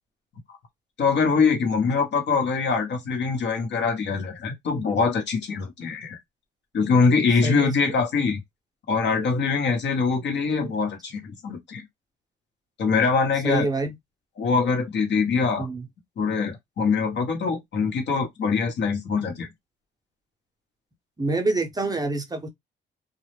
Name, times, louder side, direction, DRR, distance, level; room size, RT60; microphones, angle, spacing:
voice 1, 1.0-6.2 6.7-8.4 8.9-11.8 12.8-13.7 14.4-15.7 16.2-19.5, left 5 dB, 60° left, 0.9 m, -23 dB
voice 2, 7.4-7.8 13.4-14.0 15.6-15.9 21.2-22.5, right 2 dB, 20° right, 0.6 m, -26 dB
2.2 x 2.0 x 3.0 m
cardioid pair, 90°, 20 cm